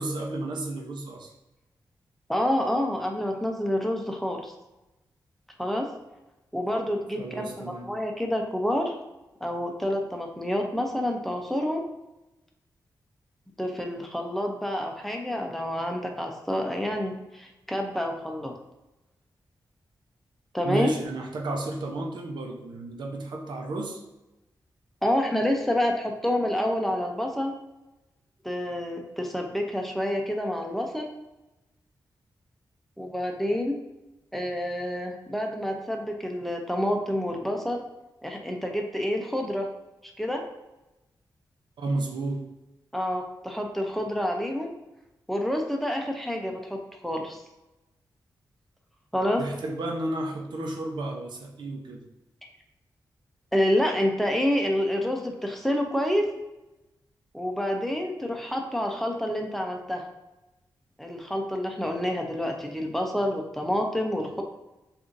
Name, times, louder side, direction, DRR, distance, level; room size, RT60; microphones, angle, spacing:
voice 1, 0.0-1.3 7.2-7.9 20.6-24.0 41.8-42.4 49.4-52.0, right 2 dB, 80° right, 2 dB, 0.7 m, -32 dB
voice 2, 2.3-4.5 5.6-5.9 6.5-7.5 7.8-9.0 9.4-11.8 13.6-18.5 20.5-20.9 25.0-27.5 28.4-31.1 33.0-33.8 34.3-37.8 38.2-39.6 40.2-40.4 42.9-44.7 45.3-47.4 49.1-49.4 53.5-56.2 57.3-60.0 61.0-64.4, left 1 dB, 5° left, 1 dB, 0.7 m, -28 dB
6.6 x 2.6 x 2.6 m, 0.99 s
cardioid pair, 80°, 8 cm